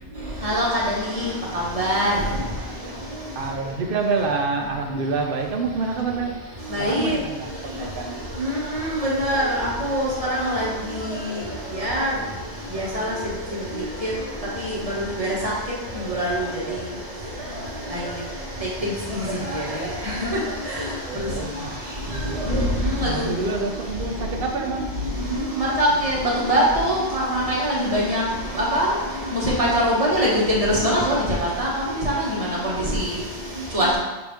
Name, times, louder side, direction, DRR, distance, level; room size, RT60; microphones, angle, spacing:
voice 1, 1.8-2.1 6.7-7.2 8.4-10.6 11.8-12.1 12.7-13.1 14.0-14.1 15.0-15.5 16.1-16.3 17.9-18.0 19.1-19.6 20.2-20.3 22.5-22.6 23.0-23.3 25.5-26.2 26.4-27.0 27.3-28.2 28.5-28.9 29.3-31.2 31.6-31.7 32.0-32.1 32.9-33.0 33.7-34.0, equal, 30° right, -5 dB, 1.0 m, -22 dB
voice 2, 3.3-6.3 6.8-8.2 21.1-22.4 23.0-24.9, right 4 dB, 60° right, 3 dB, 0.7 m, -27 dB
5.8 x 2.6 x 3.5 m, 1.2 s
omnidirectional pair, 1.2 m